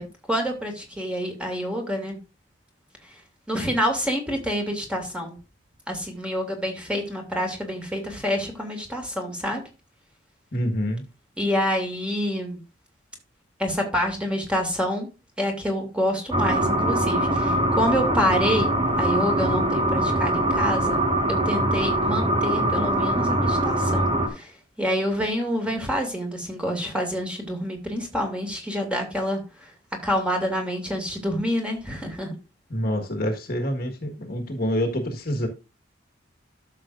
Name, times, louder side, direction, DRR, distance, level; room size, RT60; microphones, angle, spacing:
voice 1, 0.0-2.2 3.5-5.3 5.9-9.6 11.4-12.6 13.6-15.1 15.4-21.0 21.3-24.5 24.8-29.7 30.0-32.3, equal, 5° right, 2.3 m, -27 dB
voice 2, 10.5-11.1 32.7-35.5, equal, 50° left, 1.6 m, -27 dB
sound 1, 16.3-24.3, right 1 dB, 25° right, 1.5 m, -23 dB
12.5 x 6.6 x 2.6 m
head